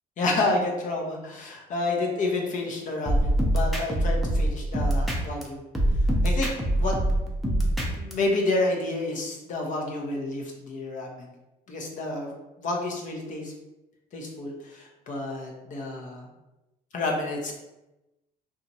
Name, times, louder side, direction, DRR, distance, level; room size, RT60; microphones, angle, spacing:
voice 1, 0.2-5.6 6.2-6.5 6.8-11.3 11.7-12.3 12.6-13.5 14.1-16.3 16.9-17.5, left 2 dB, 50° left, 0 dB, 0.7 m, -30 dB
sound 1, 3.1-5.4 5.7-8.1, right 1 dB, ahead, 0.5 m, -24 dB
2.9 x 2.3 x 2.7 m, 0.99 s
cardioid pair, 110°, 17 cm